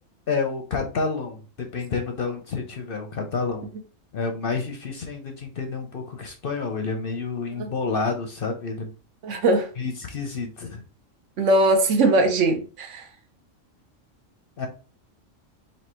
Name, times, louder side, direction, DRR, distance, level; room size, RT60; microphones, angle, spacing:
voice 1, 0.3-3.7 4.1-8.9 9.8-10.8 14.6-14.7, left 4 dB, 55° left, 0.7 m, -29 dB
voice 2, 9.2-9.7 11.4-13.1, right 2 dB, 70° right, 1.0 m, -20 dB
3.2 x 2.8 x 4.3 m
omnidirectional pair, 1.3 m